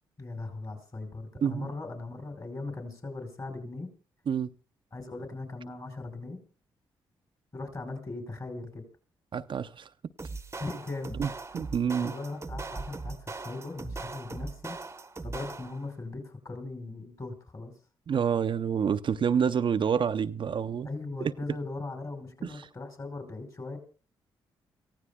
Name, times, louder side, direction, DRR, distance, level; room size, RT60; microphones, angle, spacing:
voice 1, 0.2-3.9 4.9-6.4 7.5-8.8 10.6-11.2 12.0-14.8 15.2-17.7 20.8-23.8, left 3 dB, 35° left, 5.0 m, -39 dB
voice 2, 9.3-9.9 11.2-12.1 18.1-20.9 21.2-21.3 22.4-22.7, right 7 dB, 55° right, 0.7 m, -28 dB
sound 1, 10.2-15.9, right 3 dB, 25° right, 1.0 m, -40 dB
28.5 x 15.5 x 2.3 m
supercardioid pair, 50°, 10 cm